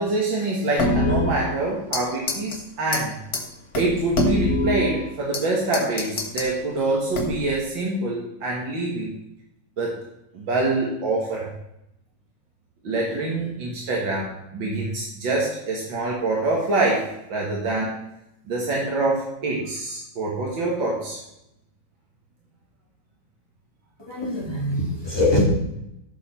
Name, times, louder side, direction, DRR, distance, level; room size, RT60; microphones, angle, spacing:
voice 1, 0.0-3.1 3.7-9.2 9.8-10.0 10.3-11.5 12.8-18.0 18.5-21.2, right 2 dB, 80° right, -3 dB, 2.6 m, -25 dB
sound 1, 0.8-2.0 2.3-2.6 2.9-3.0 3.3-3.4 3.7-5.4 5.7-6.5 7.1-7.6, left 1 dB, 55° left, 2.1 m, -24 dB
voice 2, 24.1-25.4, left 1 dB, 10° left, -3 dB, 3.1 m, -23 dB
15.0 x 6.7 x 4.4 m, 0.84 s
omnidirectional pair, 2.0 m